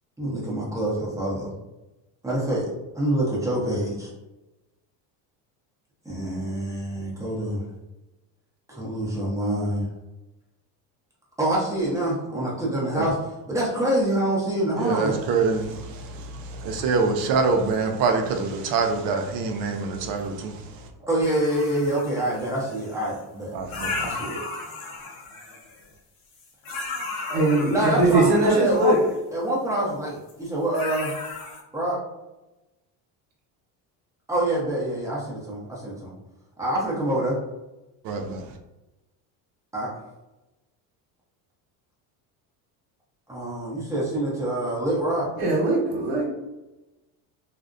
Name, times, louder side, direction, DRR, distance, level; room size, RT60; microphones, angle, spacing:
voice 1, 0.2-1.5 2.2-2.7 2.9-4.1 6.0-7.6 8.7-9.8 11.4-13.2 13.5-15.2 21.1-23.5 24.0-24.4 27.6-29.0 29.3-31.1 31.7-32.0 34.3-36.1 36.6-37.4 39.7-39.9 43.3-45.3, right 1 dB, 5° right, -6 dB, 0.7 m, -26 dB
voice 2, 14.8-20.6 23.5-24.1 38.0-38.4, right 4 dB, 55° right, 4 dB, 0.5 m, -25 dB
sound 1, 21.2-23.2 23.7-25.9 26.3-29.1 30.3-30.5 30.7-31.6, left 3 dB, 65° left, 0.8 m, -35 dB
voice 3, 27.3-29.0 45.4-46.3, right 2 dB, 80° right, -2 dB, 0.9 m, -21 dB
2.4 x 2.1 x 2.4 m, 0.99 s
cardioid pair, 130°, 44 cm